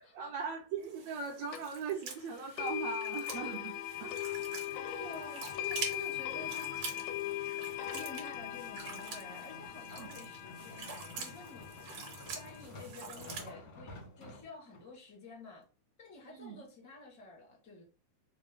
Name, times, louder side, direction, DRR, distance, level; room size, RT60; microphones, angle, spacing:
voice 1, 0.0-3.7 4.0-4.2 4.7-4.9 10.0-10.1 16.3-16.6, right 5 dB, 80° right, 1.5 m, -39 dB
sound 1, 0.8-13.5, right 5 dB, 55° right, 1.6 m, -46 dB
sound 2, 1.5-1.6 2.6-12.6, left 13 dB, 80° left, 1.4 m, -40 dB
sound 3, 3.9-14.9 15.5-15.6, left 2 dB, 60° left, 0.9 m, -52 dB
voice 2, 4.8-6.9 7.7-12.0 12.3-15.6 16.0-17.8, left 2 dB, 15° left, 0.6 m, -50 dB
4.8 x 2.1 x 3.6 m
omnidirectional pair, 3.4 m